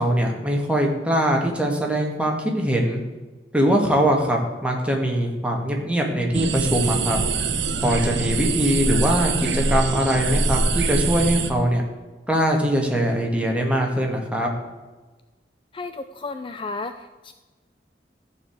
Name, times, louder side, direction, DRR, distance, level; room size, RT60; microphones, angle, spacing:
voice 1, 0.0-3.0 3.5-7.2 7.8-11.8 12.3-14.5, equal, 5° right, 0 dB, 1.8 m, -22 dB
sound 1, 6.3-11.5, right 3 dB, 85° right, 1.0 m, -24 dB
voice 2, 15.7-17.3, left 3 dB, 30° left, 9 dB, 0.4 m, -33 dB
14.0 x 4.9 x 7.9 m, 1.2 s
head